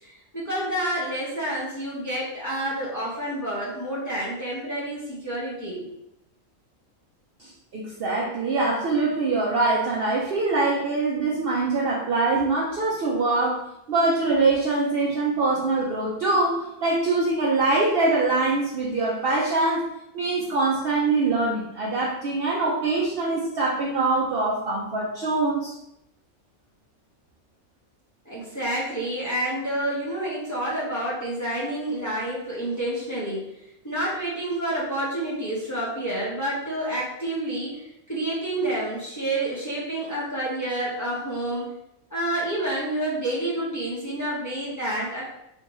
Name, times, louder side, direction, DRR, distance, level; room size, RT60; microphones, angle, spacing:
voice 1, 0.0-5.8 28.3-33.4 33.8-37.8 38.1-41.7 42.1-45.2, right 1 dB, 15° left, -8 dB, 0.8 m, -29 dB
voice 2, 7.4-13.6 13.9-19.8 20.1-25.7, right 3 dB, 60° right, -4 dB, 0.6 m, -23 dB
3.4 x 2.7 x 3.0 m, 0.83 s
omnidirectional pair, 1.4 m